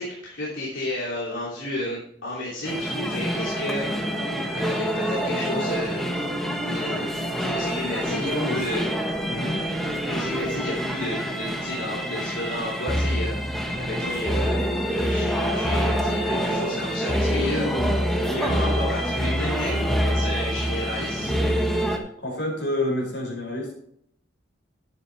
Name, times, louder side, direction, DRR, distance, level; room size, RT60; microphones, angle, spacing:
voice 1, 0.0-3.9 4.2-6.1 6.6-7.1 7.4-8.9 10.0-13.4 13.7-17.7 18.3-21.4, left 1 dB, 85° left, -7 dB, 3.0 m, -32 dB
sound 1, 2.6-22.0, equal, ahead, 1.3 m, -26 dB
voice 2, 8.0-8.7 9.2-9.6 17.3-18.0 18.2-18.8 19.2-19.5 21.1-21.4 22.2-23.7, left 1 dB, 65° left, -2 dB, 5.2 m, -30 dB
12.0 x 9.3 x 3.5 m, 0.69 s
head